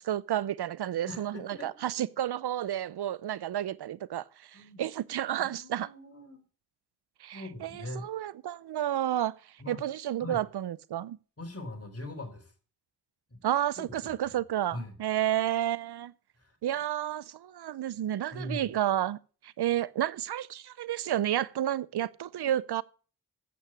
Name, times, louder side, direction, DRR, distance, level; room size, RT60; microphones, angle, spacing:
voice 1, 0.0-5.9 7.2-9.3 9.7-11.2 13.4-16.1 16.6-19.2 19.4-22.8, right 11 dB, 80° right, 0.5 m, -31 dB
voice 2, 1.1-1.9 4.5-4.8 5.4-6.4 7.3-8.1 9.6-9.8 10.2-10.4 11.4-12.5 13.3-13.4 13.8-14.4 14.7-14.9 16.4-16.6 18.3-18.7, left 1 dB, 35° left, 3.8 m, -41 dB
8.3 x 7.9 x 7.5 m
cardioid pair, 40°, 39 cm